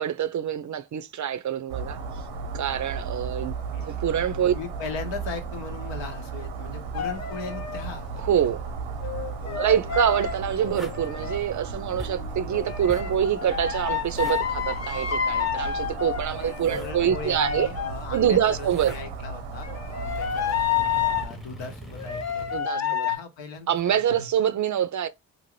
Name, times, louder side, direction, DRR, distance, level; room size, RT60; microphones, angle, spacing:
voice 1, 0.0-2.0 2.5-3.5 3.9-4.5 8.2-8.6 9.6-17.7 18.1-18.9 22.5-23.1 23.7-25.1, right 9 dB, 45° right, 0.5 m, -25 dB
sound 1, 1.7-21.3, right 4 dB, 90° right, 0.8 m, -35 dB
voice 2, 4.5-8.1 9.4-10.0 16.3-24.3, left 4 dB, 75° left, 0.9 m, -39 dB
sound 2, 6.9-7.9 9.0-11.4 12.5-18.5 19.6-21.3 22.0-23.2, left 8 dB, 35° left, 0.6 m, -30 dB
sound 3, 10.7-11.1 12.0-12.3 12.9-13.2 14.0-14.4 16.0-17.0 18.2-19.1 19.6-22.6 23.6-23.8, right 2 dB, ahead, 0.7 m, -43 dB
2.7 x 2.5 x 3.1 m
hypercardioid pair, 40°, 45 cm